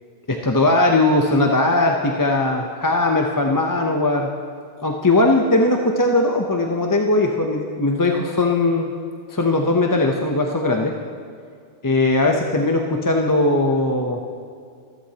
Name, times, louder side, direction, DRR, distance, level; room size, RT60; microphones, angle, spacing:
voice 1, 0.3-4.3 4.8-8.9 9.3-11.0 11.8-14.2, left 2 dB, 25° left, 2 dB, 0.5 m, -19 dB
14.5 x 14.0 x 2.8 m, 2.2 s
omnidirectional pair, 1.1 m